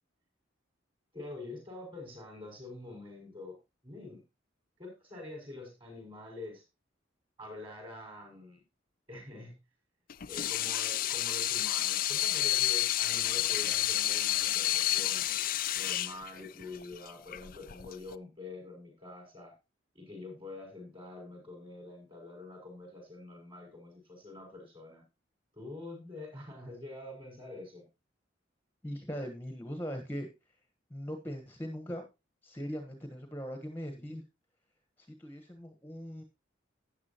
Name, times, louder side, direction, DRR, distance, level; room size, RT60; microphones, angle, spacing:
voice 1, 1.1-3.6 3.8-4.2 4.8-6.6 7.4-8.6 9.1-9.6 10.2-15.2 15.7-19.5 19.9-25.0 25.5-27.9, left 2 dB, 25° right, 3 dB, 6.7 m, -46 dB
Water tap faucet / Sink (filling or washing), 10.1-18.1, left 13 dB, 45° left, 0.5 m, -30 dB
voice 2, 28.8-30.3 30.9-32.0 32.4-34.2 35.0-36.2, equal, 10° left, 6 dB, 1.3 m, -40 dB
13.0 x 9.8 x 3.0 m, 0.25 s
head